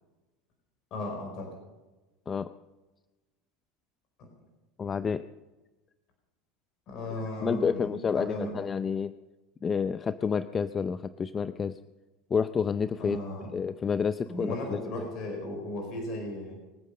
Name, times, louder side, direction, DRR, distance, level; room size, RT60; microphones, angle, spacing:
voice 1, 0.9-1.5 4.2-4.3 6.9-8.6 13.0-13.5 14.3-16.5, left 1 dB, 50° left, 2 dB, 4.8 m, -36 dB
voice 2, 4.8-5.3 7.4-9.1 9.6-11.8 12.3-13.2 13.5-15.1, left 6 dB, 30° left, 13 dB, 0.6 m, -29 dB
23.0 x 9.0 x 6.7 m, 1.1 s
hypercardioid pair, 85°, 0 cm